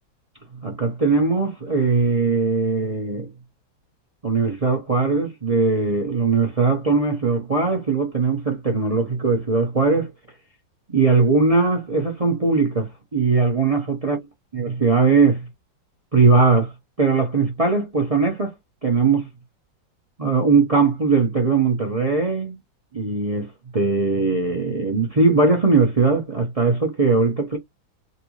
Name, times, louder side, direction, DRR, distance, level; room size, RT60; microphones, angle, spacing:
voice 1, 0.6-3.3 4.2-10.1 10.9-14.2 14.5-15.5 16.1-16.7 17.0-18.5 18.8-19.3 20.2-22.6 22.9-27.6, right 4 dB, 40° right, 0.5 m, -20 dB
3.3 x 2.8 x 3.0 m
omnidirectional pair, 2.1 m